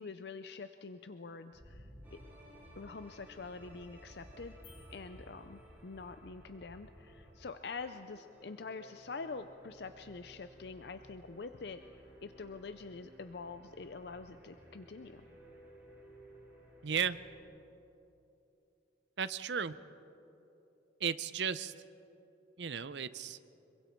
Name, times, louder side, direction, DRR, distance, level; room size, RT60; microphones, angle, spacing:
voice 1, 0.0-2.2 2.8-4.5 4.9-15.2, left 4 dB, 60° left, 9 dB, 0.5 m, -46 dB
sound 1, 1.5-7.9, equal, 45° right, 5.3 m, -56 dB
sound 2, 2.0-17.4, right 1 dB, 10° right, 4.0 m, -58 dB
sound 3, 4.6-6.2, left 6 dB, 90° left, 6.3 m, -63 dB
voice 2, 16.8-17.2 19.2-19.8 21.0-21.7 22.6-23.4, right 7 dB, 70° right, 15 dB, 0.6 m, -34 dB
26.0 x 23.0 x 4.5 m, 3.0 s
head